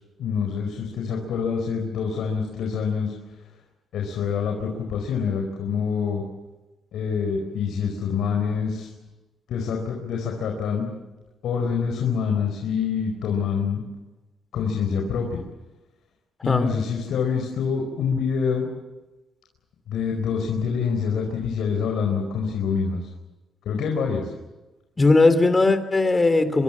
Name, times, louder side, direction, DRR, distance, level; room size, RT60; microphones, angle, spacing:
voice 1, 0.2-3.1 3.9-6.2 6.9-8.9 9.5-10.9 11.4-13.8 14.5-15.4 16.4-18.7 19.9-23.1 23.6-24.3, left 6 dB, 75° left, 2 dB, 4.8 m, -26 dB
voice 2, 25.0-26.6, left 3 dB, 20° left, 11 dB, 3.2 m, -18 dB
26.0 x 24.5 x 7.6 m, 1.1 s
cardioid pair, 90°, 0 cm